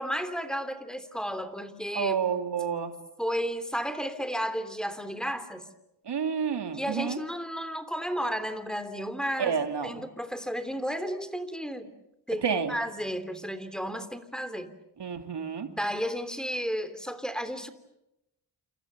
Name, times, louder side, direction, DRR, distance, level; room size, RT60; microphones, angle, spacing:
voice 1, 0.0-2.1 3.2-5.6 6.7-9.6 9.8-11.9 12.3-14.7 15.7-17.7, equal, ahead, 10 dB, 3.2 m, -33 dB
voice 2, 1.9-3.0 6.1-7.2 9.4-10.0 12.4-12.8 15.0-15.7, right 6 dB, 75° right, 6 dB, 2.6 m, -29 dB
29.0 x 28.5 x 6.9 m, 0.87 s
cardioid pair, 80°, 42 cm